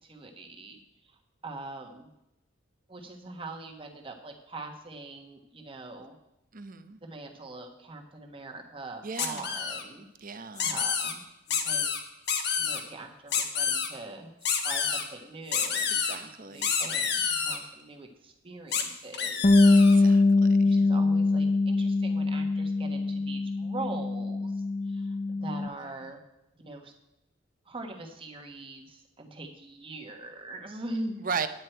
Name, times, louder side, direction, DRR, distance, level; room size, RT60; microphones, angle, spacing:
voice 1, 0.0-0.8 1.4-2.1 2.9-6.1 7.0-10.1 10.6-11.2 11.5-12.0 12.6-20.2 20.6-26.2 26.6-26.9 27.6-31.2, right 2 dB, 30° right, 3 dB, 1.4 m, -42 dB
voice 2, 6.5-7.0 9.0-9.5 10.2-10.8 16.0-16.7 19.9-20.2 31.2-31.5, right 5 dB, 45° right, 10 dB, 0.7 m, -36 dB
sound 1, 9.2-9.8 10.6-11.1 11.5-12.0 12.3-12.8 13.3-13.9 14.4-15.0 15.5-16.2 16.6-17.6 18.7-18.8 19.1-20.0, left 6 dB, 60° left, 1.2 m, -28 dB
Bass guitar, 19.4-25.7, left 3 dB, 35° left, 0.4 m, -23 dB
9.6 x 9.5 x 4.5 m, 0.89 s
head